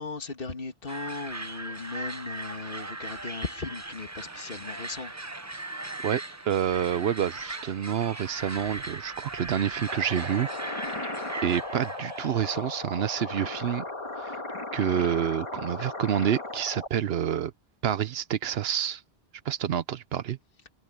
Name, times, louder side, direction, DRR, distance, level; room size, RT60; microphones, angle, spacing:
voice 1, 0.0-5.1 5.8-5.9, left 4 dB, 55° left, 2.2 m, -37 dB
sound 1, 0.9-12.6, right 2 dB, 15° right, 0.9 m, -38 dB
voice 2, 6.0-10.5 11.4-13.8 14.2-14.3 14.7-17.5 17.8-19.0 19.4-20.4, right 9 dB, 70° right, 0.9 m, -28 dB
sound 2, 9.9-16.9, left 2 dB, 30° left, 1.8 m, -36 dB
omnidirectional pair, 1.1 m